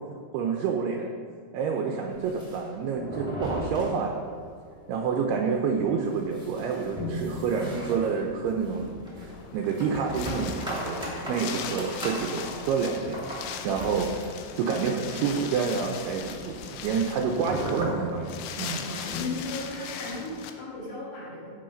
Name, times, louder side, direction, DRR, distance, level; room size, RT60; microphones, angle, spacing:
voice 1, 0.3-1.1 1.5-4.2 4.9-8.9 9.2-11.0 11.3-13.2 13.6-18.8, right 5 dB, 85° right, 2 dB, 2.3 m, -28 dB
sound 1, 2.1-4.5 4.8-4.9 5.2-5.3 5.7-19.4, equal, 5° right, 0.6 m, -37 dB
Wind, 9.3-20.5, left 8 dB, 80° left, 2.8 m, -39 dB
voice 2, 18.8-21.5, left 3 dB, 50° left, -6 dB, 3.6 m, -36 dB
16.5 x 5.6 x 5.2 m, 2.2 s
omnidirectional pair, 5.4 m